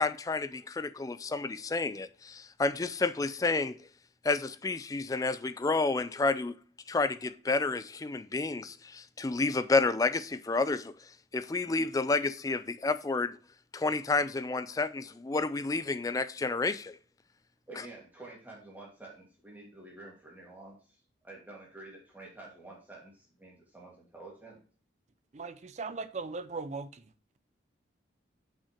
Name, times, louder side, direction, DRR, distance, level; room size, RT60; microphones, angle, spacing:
voice 1, 0.0-3.8 4.2-6.5 6.9-10.9 11.3-13.4 13.7-17.0, left 3 dB, 20° left, 0.3 m, -30 dB
voice 2, 17.7-21.0 21.2-24.6, right 2 dB, 10° right, 2.3 m, -49 dB
voice 3, 25.3-27.0, right 4 dB, 40° right, 0.5 m, -38 dB
5.7 x 5.6 x 5.0 m
head